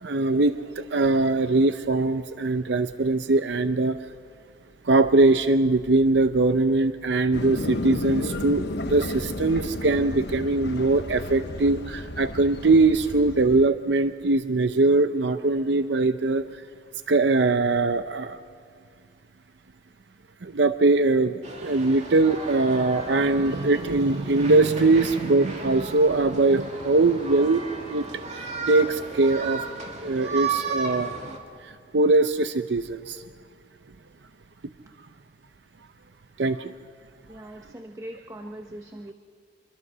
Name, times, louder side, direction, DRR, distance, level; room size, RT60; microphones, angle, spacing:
voice 1, 0.0-4.0 4.8-16.4 17.1-18.4 20.4-28.0 28.3-29.6 30.0-31.1 31.6-33.2 36.4-36.7, right 3 dB, 70° right, 10 dB, 0.7 m, -22 dB
sound 1, 7.3-13.6, left 1 dB, 65° left, 1.0 m, -33 dB
sound 2, 21.4-31.4, right 4 dB, 40° right, 2.6 m, -34 dB
voice 2, 37.3-39.1, right 1 dB, 20° right, 5 dB, 1.0 m, -40 dB
26.5 x 22.0 x 6.2 m, 2.2 s
head